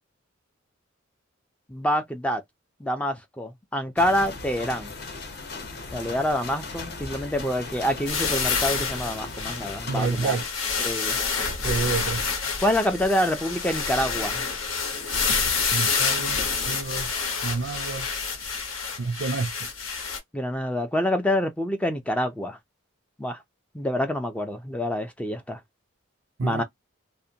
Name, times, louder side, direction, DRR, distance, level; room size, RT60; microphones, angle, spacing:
voice 1, 1.7-2.4 2.8-4.9 5.9-10.4 10.8-11.2 12.6-14.5 16.2-16.3 20.3-22.6 23.2-23.4 23.7-25.6 26.4-26.6, equal, 5° left, 0.3 m, -26 dB
sound 1, 4.0-10.4, left 3 dB, 55° left, 0.8 m, -37 dB
sound 2, 8.1-20.2, left 5 dB, 80° left, 0.9 m, -28 dB
voice 2, 9.9-10.5 11.6-12.2 15.7-17.1 17.4-18.1 19.0-19.7 26.4-26.6, right 4 dB, 60° right, 0.4 m, -29 dB
2.5 x 2.1 x 2.7 m
head